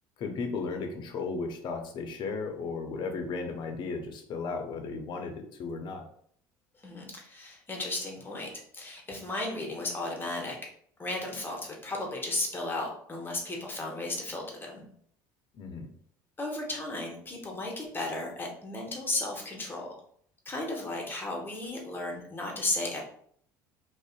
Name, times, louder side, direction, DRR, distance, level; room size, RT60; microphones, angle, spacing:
voice 1, 0.2-6.1 15.6-15.9, left 4 dB, 50° left, 4 dB, 0.6 m, -35 dB
voice 2, 6.8-10.6 11.0-14.9 16.4-19.9 20.5-23.0, left 2 dB, 20° left, 0 dB, 0.8 m, -34 dB
2.5 x 2.1 x 2.4 m, 0.62 s
hypercardioid pair, 75°, 10 cm